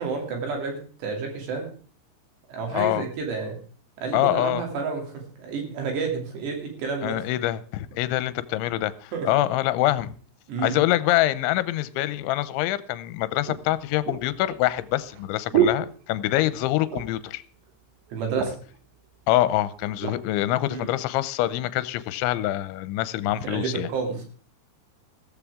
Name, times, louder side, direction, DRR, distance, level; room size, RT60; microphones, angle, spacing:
voice 1, 0.0-1.7 2.5-3.6 4.0-7.2 9.1-9.3 10.5-10.8 18.1-18.5 20.7-20.9 23.3-24.2, right 4 dB, 65° right, 4.9 m, -30 dB
voice 2, 2.7-3.0 4.1-4.6 7.0-10.1 10.6-17.4 19.3-23.9, left 15 dB, 80° left, 3.0 m, -25 dB
sound 1, 12.5-12.6 13.5-16.6 16.9-17.3 17.7-17.8 18.1-18.8 19.5-20.2 20.9-21.0, right 9 dB, 85° right, 3.7 m, -29 dB
15.5 x 14.0 x 3.6 m
omnidirectional pair, 5.4 m